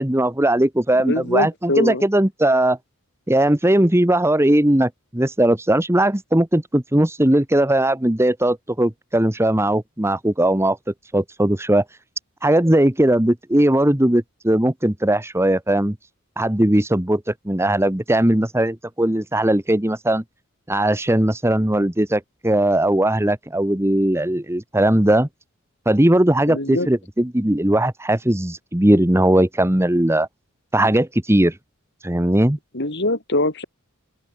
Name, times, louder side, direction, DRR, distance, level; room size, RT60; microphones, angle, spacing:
voice 1, 0.0-2.8 3.3-10.8 11.1-11.8 12.4-16.0 16.4-20.2 20.7-25.3 25.9-30.3 30.7-31.5 32.0-32.6, right 1 dB, 10° right, 1.2 m, -19 dB
voice 2, 1.1-2.0 26.5-26.9 32.7-33.6, left 2 dB, 55° left, 4.4 m, -23 dB
head